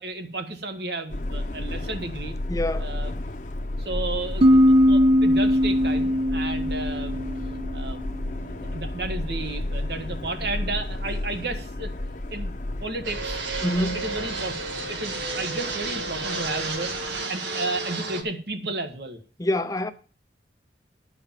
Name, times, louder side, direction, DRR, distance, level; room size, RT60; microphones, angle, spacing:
voice 1, 0.0-2.3 2.8-3.1 3.7-4.6 4.9-7.2 7.7-8.1 8.4-11.9 12.3-12.5 12.8-13.4 13.7-14.5 14.9-16.9 17.3-19.2, right 2 dB, 65° right, 1.4 m, -33 dB
Subway metro underground, 1.1-17.2, left 1 dB, 45° left, 0.8 m, -33 dB
voice 2, 2.5-3.0 13.6-14.0 19.4-19.9, left 1 dB, 20° left, 0.6 m, -26 dB
sound 1, 4.4-8.0, equal, 35° right, 0.6 m, -20 dB
Fixed-wing aircraft airplane, 13.0-18.2, right 3 dB, 90° right, 1.7 m, -31 dB
11.5 x 5.0 x 7.4 m
head